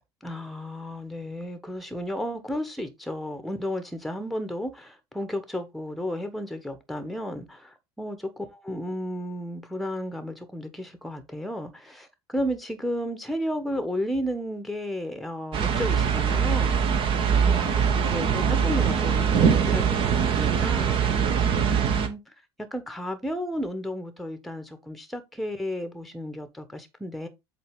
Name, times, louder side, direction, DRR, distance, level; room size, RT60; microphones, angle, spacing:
voice 1, 0.2-16.8 17.4-21.0 21.5-22.2 22.7-27.3, equal, ahead, 1.2 m, -33 dB
sound 1, 15.5-22.1, right 7 dB, 35° right, 1.1 m, -22 dB
8.0 x 2.9 x 5.0 m
figure-of-eight pair, 70°, 14 cm